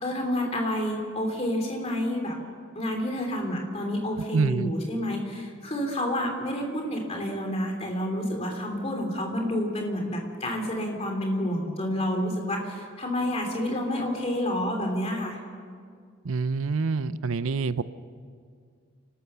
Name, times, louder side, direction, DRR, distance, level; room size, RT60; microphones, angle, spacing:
voice 1, 0.0-2.4 2.7-15.4, left 1 dB, 30° left, 2 dB, 3.2 m, -29 dB
voice 2, 4.3-4.7 16.2-17.8, right 4 dB, 70° right, 15 dB, 0.6 m, -26 dB
30.0 x 13.0 x 7.0 m, 2.1 s
head